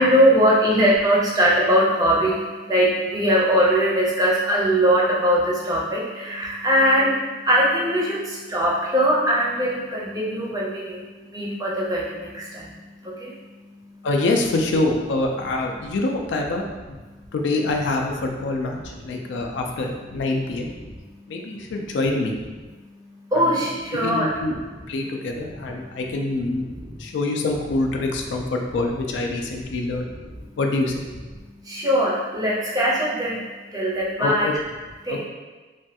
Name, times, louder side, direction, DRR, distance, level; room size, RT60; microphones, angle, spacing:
voice 1, 0.0-7.2 7.5-11.0 11.3-12.7 13.0-13.3 19.3-19.5 20.9-21.0 22.9-23.0 23.3-24.3 26.7-26.9 31.6-33.4 33.7-34.5 35.0-35.2, equal, 20° right, -5 dB, 0.5 m, -21 dB
voice 2, 14.0-17.0 17.3-20.7 21.3-22.4 23.3-23.5 23.9-24.6 24.9-26.6 27.0-30.1 30.6-30.9 34.2-34.5 35.1-35.2, left 2 dB, 75° left, 2 dB, 0.4 m, -25 dB
3.1 x 2.2 x 2.7 m, 1.3 s
head